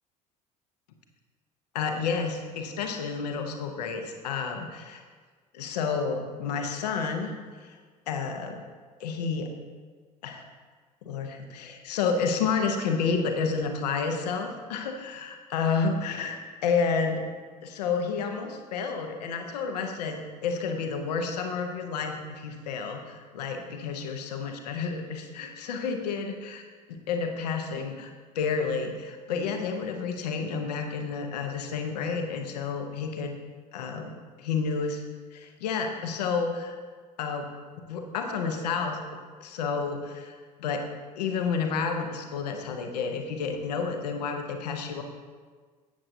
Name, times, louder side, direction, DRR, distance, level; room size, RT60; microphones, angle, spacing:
voice 1, 1.7-5.0 5.5-7.3 7.6-7.8 8.1-8.6 9.0-9.5 10.2-10.5 11.0-17.3 17.6-26.6 26.9-33.3 33.7-35.0 35.3-36.7 37.2-37.5 37.9-39.0 39.4-40.9 41.2-45.0, left 5 dB, 70° left, 4 dB, 1.0 m, -30 dB
12.5 x 8.6 x 2.8 m, 1.5 s
figure-of-eight pair, 55°, 21 cm